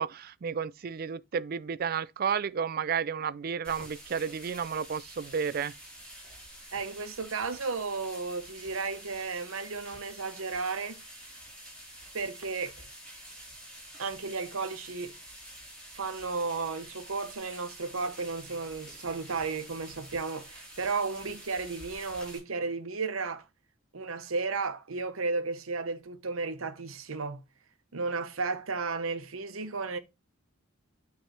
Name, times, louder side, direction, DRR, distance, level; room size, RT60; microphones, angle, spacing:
voice 1, 0.0-5.7, right 6 dB, 45° right, 0.4 m, -32 dB
sound 1, 3.6-22.4, equal, 5° left, 3.9 m, -48 dB
voice 2, 6.7-11.0 12.1-12.9 14.0-15.1 15.9-23.4 23.9-27.4 27.9-30.0, right 4 dB, 85° right, 0.9 m, -34 dB
9.1 x 3.4 x 4.3 m
head